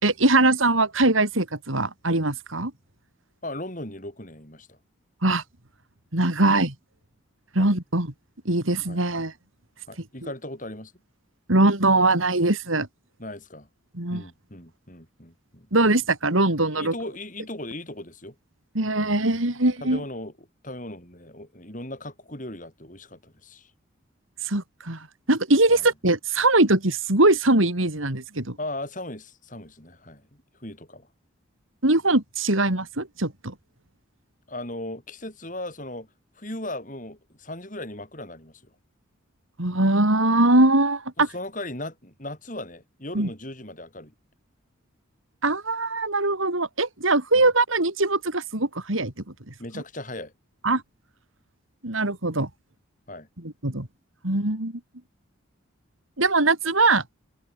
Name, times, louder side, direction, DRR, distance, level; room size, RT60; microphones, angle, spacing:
voice 1, 0.0-2.7 5.2-5.4 6.1-6.7 7.5-8.1 8.5-9.3 10.2-10.3 11.5-12.9 13.9-14.2 15.7-16.9 18.7-20.0 24.4-28.6 31.8-33.5 39.6-41.3 43.1-43.3 45.4-49.1 49.5-49.8 50.6-50.8 51.8-52.5 53.4-53.9 54.2-54.8 56.2-57.0, right 2 dB, 80° right, 3.7 m, -22 dB
voice 2, 3.4-4.8 7.6-7.7 8.9-9.0 9.9-10.9 13.2-13.7 14.1-15.7 16.7-18.4 19.8-20.3 20.6-23.7 25.7-25.8 28.6-31.1 34.5-36.1 36.4-38.6 41.2-44.1 47.3-47.5 49.6-50.3 53.1-53.3, left 1 dB, 40° left, 7.6 m, -37 dB
head